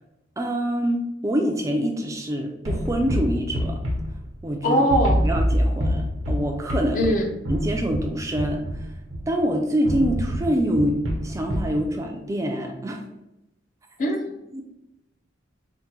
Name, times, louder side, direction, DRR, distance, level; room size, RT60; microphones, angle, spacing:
voice 1, 0.4-3.8 4.4-4.8 5.2-7.0 7.5-8.9 9.3-13.0 14.5-14.6, equal, 15° right, 2 dB, 0.3 m, -25 dB
sound 1, 2.7-4.6 4.9-9.4 9.9-11.8, equal, 90° right, 0.8 m, -26 dB
voice 2, 4.6-5.2 6.9-7.3 14.0-14.3, equal, 40° left, 3 dB, 0.5 m, -21 dB
4.6 x 2.1 x 2.9 m, 0.88 s
head